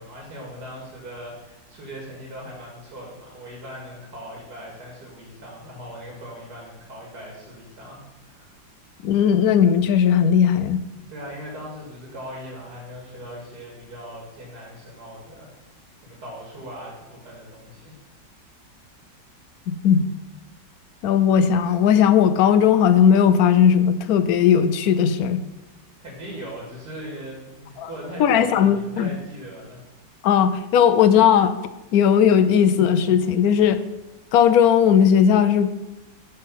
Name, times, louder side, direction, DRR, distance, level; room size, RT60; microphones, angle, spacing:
voice 1, 0.0-8.0 8.3-8.5 11.1-18.0 26.0-29.8, equal, 60° right, -3 dB, 2.7 m, -39 dB
voice 2, 9.0-10.8 19.7-20.1 21.0-25.4 27.8-27.9 28.2-29.1 30.2-31.5 31.9-33.8 34.3-35.7, left 8 dB, 70° left, 11 dB, 0.9 m, -17 dB
12.0 x 4.3 x 5.6 m, 1.0 s
omnidirectional pair, 2.0 m